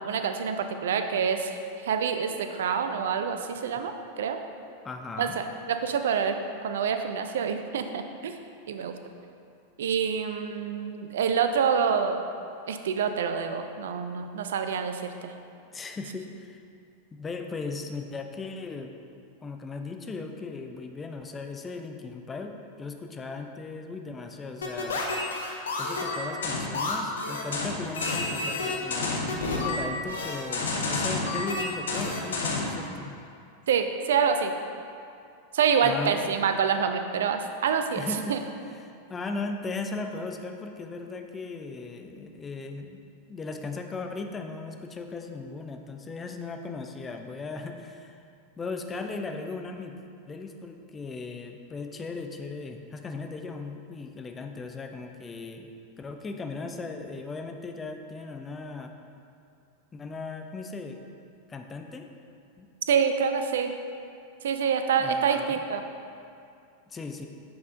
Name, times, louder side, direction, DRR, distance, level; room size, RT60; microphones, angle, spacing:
voice 1, 0.0-1.6 1.8-4.4 5.2-8.3 8.7-8.9 9.8-12.3 12.7-15.3 33.7-34.5 35.5-38.0 38.3-38.4 62.9-63.7 64.4-65.8, right 6 dB, 60° right, 7 dB, 0.4 m, -27 dB
voice 2, 4.8-5.4 15.7-16.6 17.1-18.9 19.4-25.0 25.8-33.1 35.8-36.5 38.0-38.4 38.7-43.0 43.3-48.2 48.6-50.0 50.3-55.7 56.0-58.9 59.9-61.0 61.5-62.1 62.6-62.7 65.0-65.6 66.9-67.3, left 3 dB, 20° left, 4 dB, 0.4 m, -37 dB
sound 1, 24.6-32.8, left 3 dB, 65° left, 0.7 m, -30 dB
7.7 x 5.4 x 2.5 m, 2.5 s
figure-of-eight pair, 90°, 0 cm